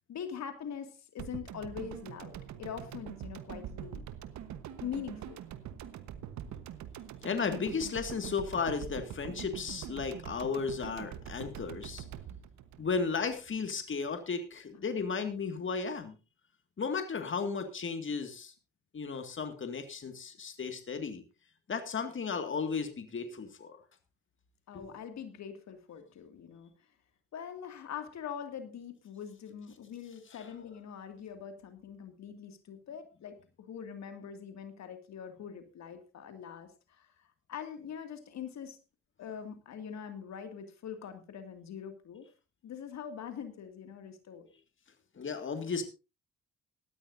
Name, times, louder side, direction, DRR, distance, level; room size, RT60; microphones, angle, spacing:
voice 1, 0.1-4.0 4.8-5.4 24.7-26.7 27.3-38.8 39.2-42.3 42.6-44.5, left 8 dB, 65° left, 7 dB, 2.3 m, -43 dB
sound 1, 1.2-13.5 13.8-13.9, right 9 dB, 70° right, 1.3 m, -44 dB
voice 2, 7.2-12.1 12.8-16.2 16.8-18.5 18.9-21.2 21.7-23.8 24.7-24.9 30.3-30.5 45.2-45.8, left 5 dB, 40° left, 7 dB, 2.0 m, -34 dB
18.5 x 13.5 x 2.7 m, 0.30 s
hypercardioid pair, 50°, 30 cm